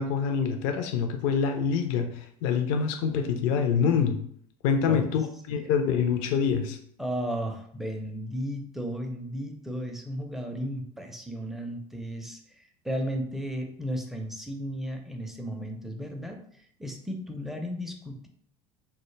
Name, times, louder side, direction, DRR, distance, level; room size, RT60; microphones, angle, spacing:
voice 1, 0.0-2.1 2.4-4.2 4.6-6.8, left 6 dB, 60° left, 6 dB, 0.4 m, -25 dB
voice 2, 7.0-16.4 16.8-18.3, equal, ahead, 3 dB, 0.4 m, -34 dB
2.2 x 2.1 x 3.0 m, 0.64 s
figure-of-eight pair, 65°, 20 cm